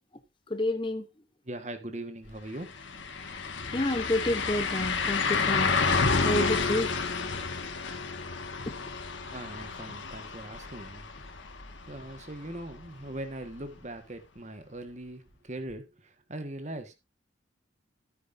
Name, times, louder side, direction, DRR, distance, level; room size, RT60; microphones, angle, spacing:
voice 1, 0.5-1.0 3.7-6.9, left 1 dB, 25° left, 0.8 m, -29 dB
voice 2, 1.4-2.8 3.6-3.8 9.3-11.1 11.9-16.9, right 1 dB, 35° right, 1.4 m, -40 dB
sound 1, 2.3-2.4 2.7-12.5 12.8-12.9 15.7-15.8, left 4 dB, 75° left, 1.6 m, -30 dB
13.0 x 9.9 x 2.6 m
head